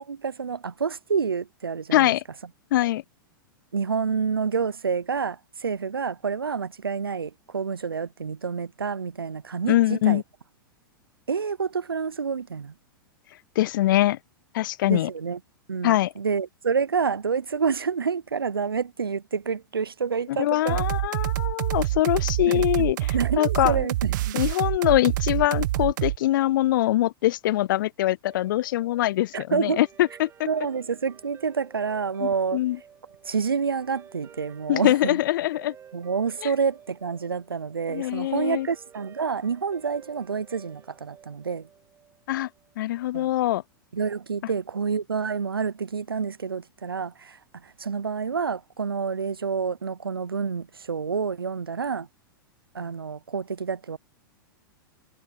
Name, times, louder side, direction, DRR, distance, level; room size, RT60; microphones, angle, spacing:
voice 1, 0.0-2.1 3.7-10.2 11.3-12.7 14.9-15.4 15.7-20.8 22.4-22.9 23.1-24.4 29.3-29.8 30.5-32.6 33.2-35.2 35.9-41.7 43.1-43.3 43.9-52.1 52.7-54.0, right 6 dB, 90° right, 0.8 m, -28 dB
voice 2, 1.9-2.2 2.7-3.0 9.7-10.2 13.6-14.2 14.5-15.1 15.8-16.1 20.4-23.9 24.3-30.5 32.2-32.8 34.7-35.7 36.4-36.5 37.9-38.7 42.3-42.5 42.8-43.6, left 15 dB, 60° left, 0.4 m, -23 dB
sound 1, 20.7-26.2, right 16 dB, 60° right, 0.6 m, -26 dB
Guitar, 28.2-42.8, right 8 dB, 20° right, 1.5 m, -52 dB
hypercardioid pair, 105°, 12 cm